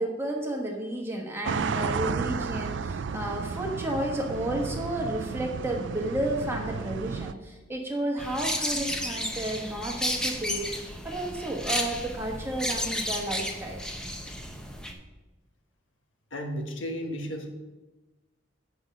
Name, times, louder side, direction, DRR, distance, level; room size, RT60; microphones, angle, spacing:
voice 1, 0.0-13.8, right 1 dB, 10° right, 0 dB, 1.2 m, -32 dB
sound 1, 1.4-7.3, right 5 dB, 70° right, 0.4 m, -33 dB
sound 2, 8.2-14.9, equal, 5° left, 0.7 m, -32 dB
voice 2, 16.3-17.5, equal, 80° left, 3 dB, 1.3 m, -33 dB
8.0 x 5.2 x 6.4 m, 1.1 s
head